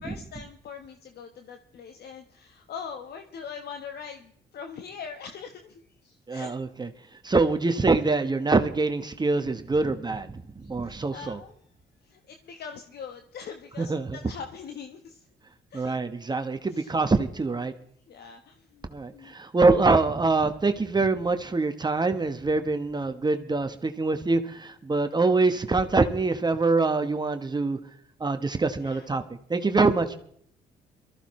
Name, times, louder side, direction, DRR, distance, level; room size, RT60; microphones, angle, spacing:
voice 1, 0.0-6.6 10.6-11.7 12.0-15.3 15.7-16.0 16.7-16.9 18.1-18.9 19.1-19.3 28.8-29.1, left 6 dB, 65° left, 5 dB, 1.2 m, -42 dB
voice 2, 6.3-6.9 7.2-11.4 13.8-14.2 15.7-17.7 18.9-27.8 28.2-29.2 29.5-30.2, right 3 dB, 25° right, 8 dB, 1.2 m, -24 dB
22.5 x 14.0 x 3.2 m, 0.64 s
supercardioid pair, 70°, 18 cm